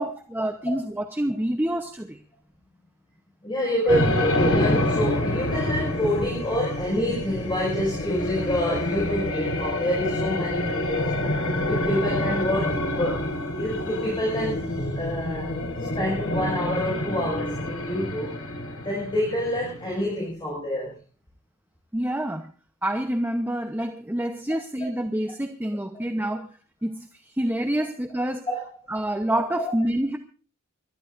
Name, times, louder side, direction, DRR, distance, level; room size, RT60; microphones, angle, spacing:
voice 1, 0.0-2.2 3.8-4.0 21.9-22.5 22.8-26.5 26.8-28.5 28.9-30.2, right 1 dB, 10° right, 5 dB, 0.9 m, -27 dB
voice 2, 3.4-11.1 11.6-13.2 13.6-15.5 16.0-18.4 18.8-20.9 28.5-28.6 29.3-29.7, left 1 dB, 20° left, -4 dB, 6.2 m, -28 dB
sound 1, 3.9-20.1, left 1 dB, 75° left, 4.7 m, -27 dB
29.0 x 13.5 x 2.6 m, 0.38 s
head